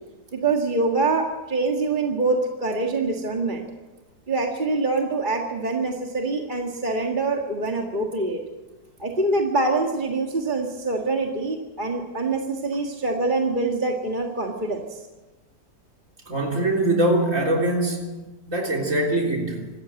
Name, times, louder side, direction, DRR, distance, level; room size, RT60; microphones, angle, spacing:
voice 1, 0.3-3.6 4.3-8.4 9.0-15.1, right 3 dB, 30° right, 1 dB, 1.8 m, -25 dB
voice 2, 16.3-18.1 18.5-19.7, right 1 dB, 45° right, 0 dB, 4.0 m, -22 dB
25.5 x 13.5 x 7.8 m, 1.1 s
omnidirectional pair, 1.8 m